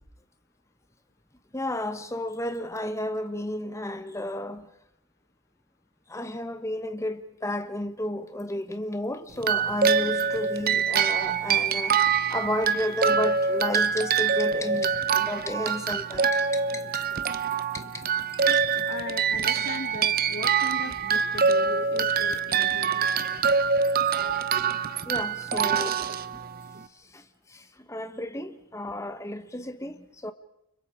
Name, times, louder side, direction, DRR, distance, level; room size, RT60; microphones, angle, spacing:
voice 1, 1.5-4.7 6.1-17.1 17.7-18.0 18.3-18.6 25.0-26.1 26.9-30.3, left 1 dB, 15° left, 1.2 m, -33 dB
sound 1, 9.4-26.8, right 6 dB, 40° right, 0.8 m, -25 dB
voice 2, 18.8-23.1, left 2 dB, 45° left, 2.3 m, -38 dB
30.0 x 25.0 x 4.9 m
head